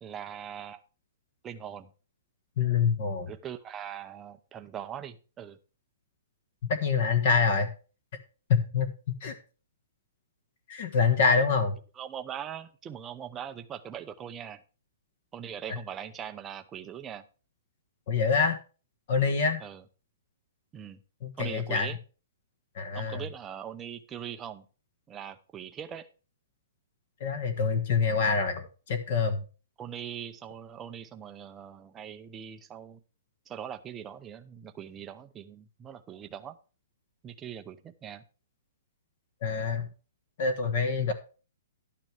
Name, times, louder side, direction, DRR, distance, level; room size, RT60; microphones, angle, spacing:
voice 1, 0.0-0.8 1.4-1.9 3.3-5.6 11.3-11.4 12.0-14.6 15.3-17.2 19.6-19.8 20.7-21.0 21.4-22.0 22.9-24.6 25.1-26.1 29.8-33.0 33.5-36.6 37.2-38.2, right 9 dB, 10° right, 8 dB, 0.6 m, -41 dB
voice 2, 2.6-3.3 6.7-7.7 8.5-8.9 9.2-9.4 10.7-11.8 15.7-15.8 18.1-18.6 19.1-19.6 21.2-21.9 22.7-23.2 27.2-29.4 39.4-39.9 40.4-41.1, left 5 dB, 40° left, 10 dB, 1.4 m, -26 dB
12.0 x 9.0 x 3.4 m, 0.35 s
hypercardioid pair, 180°, 0 cm